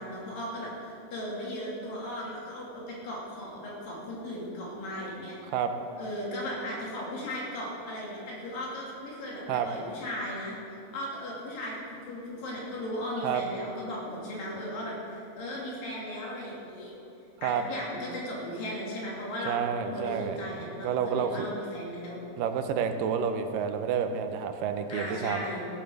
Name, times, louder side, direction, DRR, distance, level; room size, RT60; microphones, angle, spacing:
voice 1, 0.0-5.4 6.0-10.5 10.9-16.9 17.4-22.2 24.9-25.7, left 1 dB, 85° left, -4 dB, 4.3 m, -37 dB
voice 2, 19.5-21.5 22.4-25.5, right 7 dB, 85° right, 8 dB, 2.4 m, -29 dB
15.5 x 7.8 x 6.8 m, 2.8 s
omnidirectional pair, 3.9 m